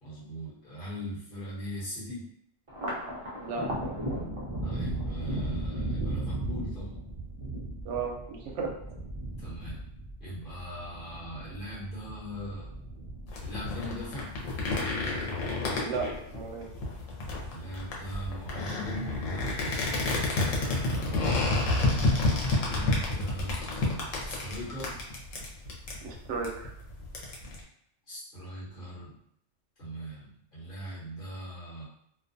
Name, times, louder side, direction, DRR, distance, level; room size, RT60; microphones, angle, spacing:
voice 1, 0.0-2.3 4.6-7.0 9.4-9.8 10.2-12.7 13.4-14.3 17.5-21.5 22.6-25.0 28.1-29.2 29.8-31.9, equal, 45° left, -8 dB, 1.1 m, -40 dB
Thunder, 2.7-15.3 15.7-16.5 16.9-17.7, right 1 dB, 45° right, 0.4 m, -36 dB
voice 2, 7.8-8.7 15.8-16.7 26.0-26.7, right 5 dB, 70° right, 1 dB, 0.8 m, -34 dB
sound 1, 13.3-27.6, left 2 dB, 90° left, 1.0 m, -30 dB
2.4 x 2.2 x 2.6 m, 0.71 s
omnidirectional pair, 1.3 m